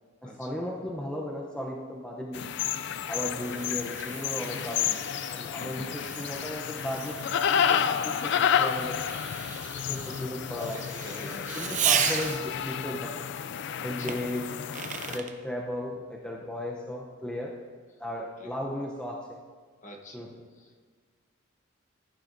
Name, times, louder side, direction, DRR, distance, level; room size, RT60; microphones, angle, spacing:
voice 1, 0.2-2.6 3.1-9.0 9.9-10.8 11.1-13.3 13.8-14.5 15.1-17.5 18.0-19.4 20.1-20.4, left 1 dB, 5° left, -2 dB, 0.6 m, -36 dB
sound 1, 2.3-15.2, left 8 dB, 55° left, 0.3 m, -30 dB
Fireworks, 2.7-12.7 14.1-15.4, right 8 dB, 35° right, 0.5 m, -35 dB
voice 2, 3.3-3.7 5.5-5.8 10.7-11.9 13.8-14.2 16.4-16.5 18.4-18.6 19.8-20.9, equal, 35° left, 1 dB, 1.1 m, -48 dB
14.5 x 8.9 x 2.6 m, 1.5 s
head